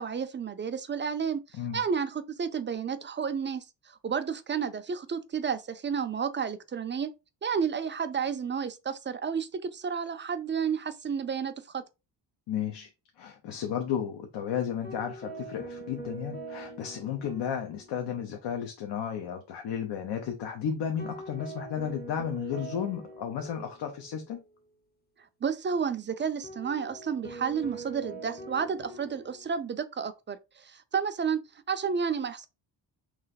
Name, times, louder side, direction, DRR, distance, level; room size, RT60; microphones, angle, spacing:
voice 1, 0.0-1.4 1.7-3.6 4.0-7.1 7.4-11.8 25.4-31.4 31.7-32.5, right 6 dB, 25° right, 0.4 m, -31 dB
voice 2, 12.5-12.9 13.2-24.4, left 8 dB, 70° left, 0.8 m, -33 dB
sound 1, 14.8-18.4 18.7-18.8 21.0-24.3 26.4-29.7, right 2 dB, 20° left, 0.7 m, -43 dB
3.2 x 3.2 x 4.0 m
cardioid pair, 100°, 44 cm